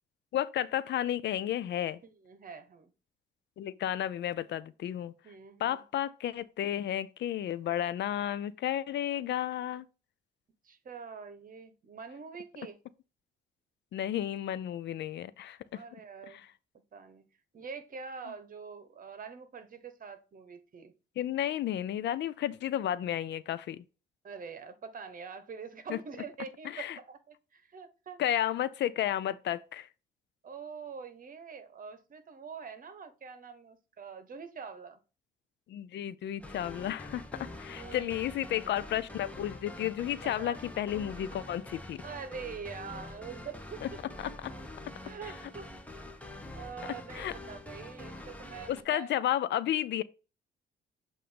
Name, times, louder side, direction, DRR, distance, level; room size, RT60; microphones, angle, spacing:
voice 1, 0.3-2.0 3.6-5.1 5.6-9.9 13.9-15.8 16.3-16.5 21.2-23.8 25.9-26.0 26.6-27.0 28.2-29.9 35.7-42.0 43.8-43.9 44.2-44.5 44.8-44.9 47.1-47.3 48.7-50.0, left 11 dB, 65° left, 0.4 m, -32 dB
voice 2, 2.0-2.9 5.2-5.8 10.6-12.8 15.7-16.5 16.9-17.2 17.5-20.9 24.2-28.2 30.4-35.0 37.7-38.3 38.6-38.7 40.2-40.6 42.0-43.8 44.5-44.6 45.0-45.7 46.0-49.2, right 6 dB, 45° right, 1.1 m, -45 dB
sound 1, 36.4-48.8, left 1 dB, 5° left, 1.0 m, -45 dB
7.6 x 2.6 x 5.1 m
cardioid pair, 90°, 20 cm